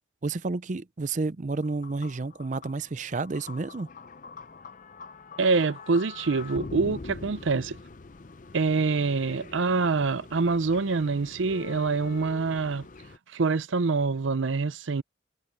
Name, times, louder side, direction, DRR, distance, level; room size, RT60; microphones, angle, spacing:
voice 1, 0.2-3.9, right 3 dB, 40° right, 0.5 m, -30 dB
sound 1, 1.6-13.2, left 3 dB, 45° left, 0.6 m, -44 dB
voice 2, 5.4-7.8 8.5-12.8 13.3-15.0, right 4 dB, 85° right, 0.6 m, -25 dB
head